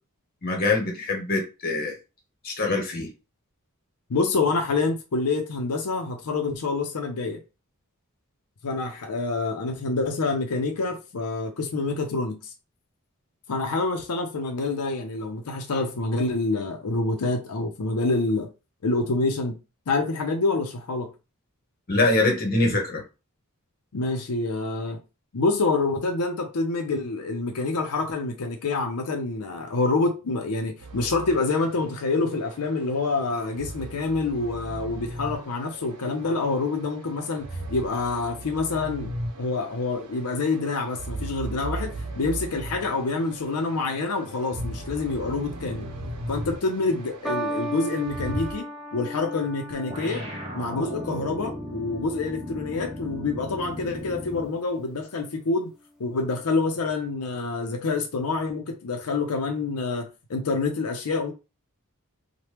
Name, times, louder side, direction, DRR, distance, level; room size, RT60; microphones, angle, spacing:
voice 1, 0.4-2.0 2.4-3.1 21.9-23.0, left 2 dB, 40° left, 0.9 m, -24 dB
voice 2, 4.1-7.4 8.6-12.5 13.5-18.5 18.8-19.6 19.9-21.1 23.9-25.0 25.3-39.1 39.4-45.9 46.3-48.7 48.9-50.2 50.5-55.7 56.0-61.3, left 3 dB, 85° left, 0.6 m, -27 dB
sound 1, 30.8-48.5, right 1 dB, 90° right, 0.7 m, -38 dB
sound 2, 47.2-53.8 54.6-55.0, right 1 dB, ahead, 0.4 m, -36 dB
sound 3, 49.9-54.6, equal, 30° right, 0.8 m, -36 dB
3.0 x 2.2 x 3.2 m
head